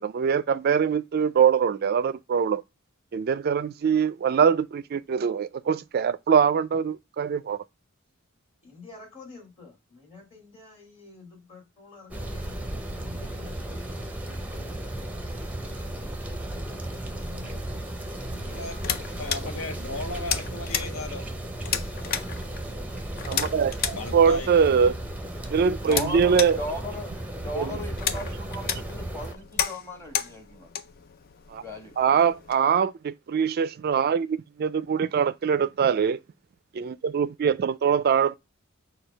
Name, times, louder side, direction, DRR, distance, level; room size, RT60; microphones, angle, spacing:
voice 1, 0.0-2.6 3.1-7.6 23.3-24.9 25.5-26.6 27.6-27.7 31.5-31.6 32.0-36.2 36.7-38.4, right 7 dB, 45° right, 0.3 m, -23 dB
voice 2, 8.6-15.1 15.8-16.2 17.0-19.1, left 3 dB, 30° left, 2.5 m, -49 dB
sound 1, 12.1-29.3, right 1 dB, 5° right, 0.6 m, -35 dB
sound 2, 18.3-32.5, left 8 dB, 45° left, 0.4 m, -34 dB
voice 3, 19.2-21.3 23.9-24.5, left 2 dB, 80° left, 0.8 m, -36 dB
voice 4, 25.8-30.7 31.6-31.9, left 1 dB, 15° left, 1.3 m, -37 dB
6.2 x 2.3 x 3.3 m
head